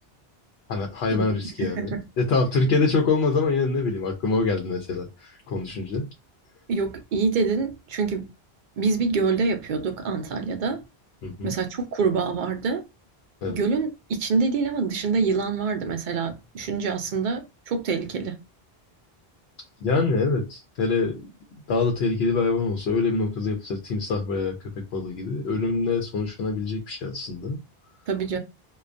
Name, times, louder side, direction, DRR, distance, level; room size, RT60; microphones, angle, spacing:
voice 1, 0.7-6.1 11.2-11.5 13.4-13.6 19.8-21.2 21.7-27.6, left 3 dB, 85° left, 0.9 m, -25 dB
voice 2, 1.6-2.0 6.7-8.3 8.8-10.8 11.4-12.8 13.5-18.4 28.1-28.4, right 4 dB, 60° right, 0.6 m, -26 dB
2.3 x 2.2 x 2.4 m
omnidirectional pair, 1.0 m